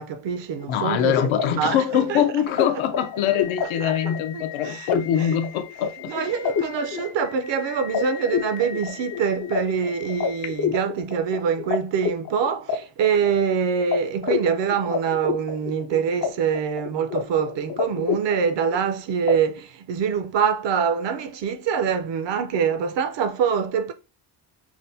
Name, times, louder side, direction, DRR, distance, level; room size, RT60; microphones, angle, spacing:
voice 1, 0.0-1.1 1.6-2.2 3.6-4.0 4.3-4.9 5.2-5.3 6.1-23.9, right 7 dB, 60° right, 0.7 m, -25 dB
sound 1, 0.6-11.8 12.0-13.6 13.9-14.0 14.2-16.3 16.5-17.2 17.5-18.9 19.3-19.4, left 7 dB, 40° left, 0.5 m, -28 dB
voice 2, 0.7-6.1, left 9 dB, 75° left, 0.8 m, -23 dB
5.9 x 2.1 x 2.6 m
cardioid pair, 145°, 48 cm